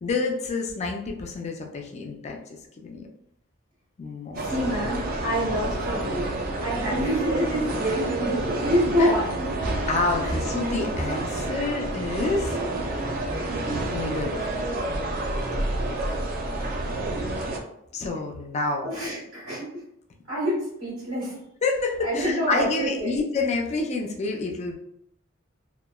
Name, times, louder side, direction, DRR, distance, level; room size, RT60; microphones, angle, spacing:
voice 1, 0.0-3.1 4.0-4.7 9.0-9.1 9.9-12.6 13.9-14.3 17.9-18.9 21.6-24.7, left 3 dB, 30° left, 2 dB, 0.4 m, -28 dB
sound 1, 4.3-17.6, right 2 dB, 45° right, 0.4 m, -29 dB
voice 2, 4.4-6.3 6.6-9.5 10.2-10.3 18.8-19.7 20.3-21.4 22.0-23.1, equal, 80° right, -8 dB, 1.4 m, -27 dB
2.9 x 2.1 x 2.2 m, 0.76 s
head